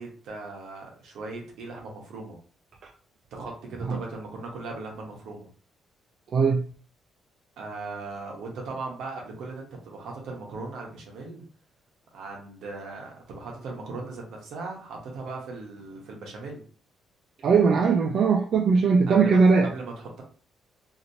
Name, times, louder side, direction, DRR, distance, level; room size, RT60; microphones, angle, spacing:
voice 1, 0.0-2.4 3.3-5.5 7.6-11.4 12.1-16.6 19.1-20.2, right 3 dB, 80° right, 1.0 m, -38 dB
voice 2, 6.3-6.7 17.4-19.7, right 5 dB, 60° right, 0.4 m, -20 dB
2.8 x 2.8 x 2.7 m
cardioid pair, 90°, 0 cm